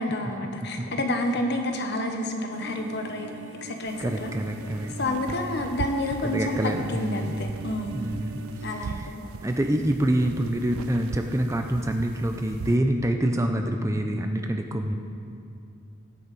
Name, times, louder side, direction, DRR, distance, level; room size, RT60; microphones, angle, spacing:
voice 1, 0.0-3.3 3.6-4.3 5.0-8.1 8.6-9.3, left 1 dB, 50° left, 4 dB, 1.1 m, -29 dB
sound 1, 2.5-8.8, right 2 dB, 60° right, 0.7 m, -43 dB
sound 2, 3.9-12.8, right 5 dB, 90° right, 0.4 m, -40 dB
voice 2, 4.0-5.3 6.2-7.4 7.9-8.4 8.8-9.1 9.4-14.9, right 1 dB, 15° right, 4 dB, 0.5 m, -26 dB
18.0 x 8.8 x 4.2 m, 2.6 s
head